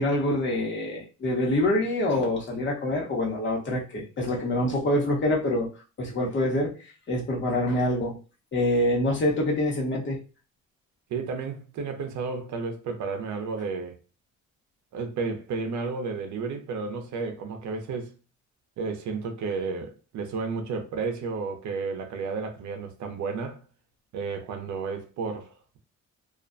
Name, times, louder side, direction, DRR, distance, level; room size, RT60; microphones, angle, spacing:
voice 1, 0.0-5.7 6.0-6.7 7.1-8.2 8.5-10.2, left 1 dB, 40° left, 1.0 m, -25 dB
voice 2, 11.1-14.0 14.9-18.1 18.8-23.6 24.1-25.8, right 4 dB, 70° right, 0.6 m, -32 dB
2.4 x 2.1 x 2.5 m
cardioid pair, 90°, 30 cm